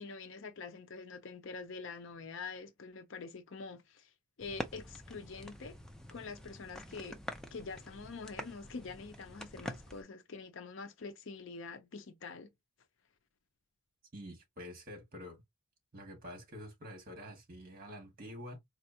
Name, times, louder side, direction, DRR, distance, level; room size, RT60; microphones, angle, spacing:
voice 1, 0.0-4.1 4.4-5.8 6.1-7.2 7.5-12.5, left 4 dB, 60° left, 0.6 m, -45 dB
sound 1, 4.4-10.0, left 1 dB, 5° left, 0.4 m, -46 dB
voice 2, 14.1-15.4 15.9-18.6, equal, 40° right, 1.6 m, -47 dB
4.2 x 2.4 x 2.7 m
head